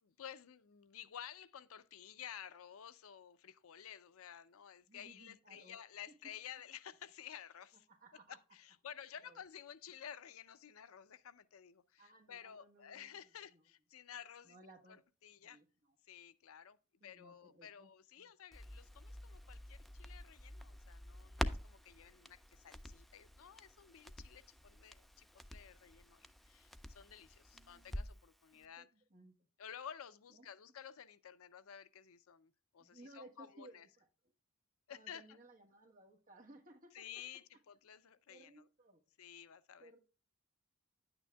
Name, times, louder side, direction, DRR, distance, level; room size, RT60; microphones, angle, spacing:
voice 1, 0.0-7.9 8.3-14.6 15.2-15.6 16.0-16.8 17.0-28.9 29.6-33.9 34.9-35.4 36.9-38.7 39.2-40.0, left 9 dB, 75° left, 0.5 m, -53 dB
voice 2, 4.9-5.8 6.2-6.3 7.9-8.4 9.2-9.4 12.0-13.2 13.5-13.6 14.4-15.0 15.4-15.9 17.0-17.9 18.2-18.3 27.5-28.0 28.5-29.3 30.3-30.4 32.8-34.1 34.9-37.2 38.3-39.0 39.8-40.0, right 2 dB, 40° right, 1.4 m, -60 dB
Crackle, 18.5-28.3 28.6-28.7, equal, ahead, 0.4 m, -47 dB
10.0 x 8.9 x 2.3 m
head